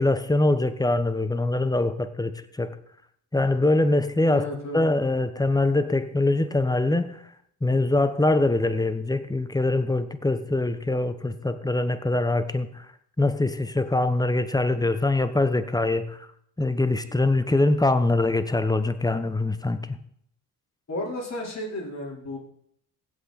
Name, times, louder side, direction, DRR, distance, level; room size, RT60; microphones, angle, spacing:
voice 1, 0.0-2.3 2.6-2.8 3.3-4.5 4.7-7.2 7.6-12.9 13.2-16.2 16.6-20.0, left 2 dB, 10° left, 11 dB, 1.1 m, -23 dB
voice 2, 4.2-4.8 20.9-22.4, left 1 dB, 35° left, -3 dB, 4.4 m, -33 dB
16.0 x 6.2 x 4.3 m, 0.68 s
hypercardioid pair, 50°, 45 cm